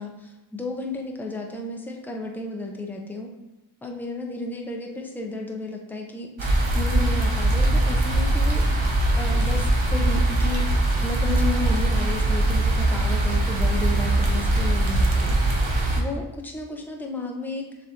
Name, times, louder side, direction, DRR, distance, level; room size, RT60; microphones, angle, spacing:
voice 1, 0.0-3.3 3.8-6.3 6.7-8.9 9.2-10.7 11.0-17.9, left 3 dB, 5° left, 1 dB, 0.6 m, -33 dB
sound 1, 6.4-16.0, right 2 dB, 75° right, 0.9 m, -21 dB
6.6 x 2.5 x 2.9 m, 1.0 s
cardioid pair, 45°, 48 cm